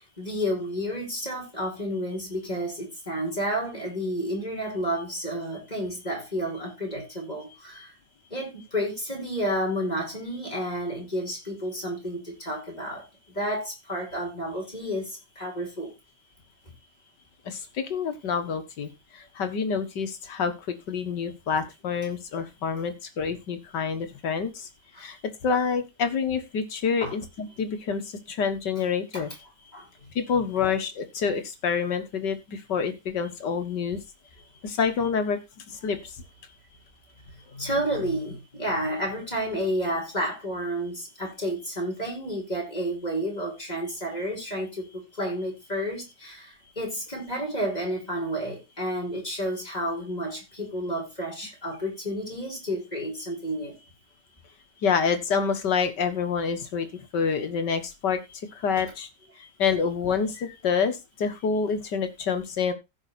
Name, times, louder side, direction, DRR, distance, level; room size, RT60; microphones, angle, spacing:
voice 1, 0.2-7.9 8.3-13.0 13.3-15.9 24.9-25.1 27.0-27.1 29.1-29.2 29.7-29.9 37.5-44.9 45.2-53.8, equal, 25° left, 5.5 m, -31 dB
voice 2, 17.5-24.7 25.0-29.3 30.2-34.0 34.6-35.4 35.7-36.1 54.8-56.9 57.1-58.2 58.5-59.1 59.6-62.7, left 6 dB, 85° left, 2.2 m, -27 dB
15.5 x 5.5 x 4.1 m
omnidirectional pair, 1.8 m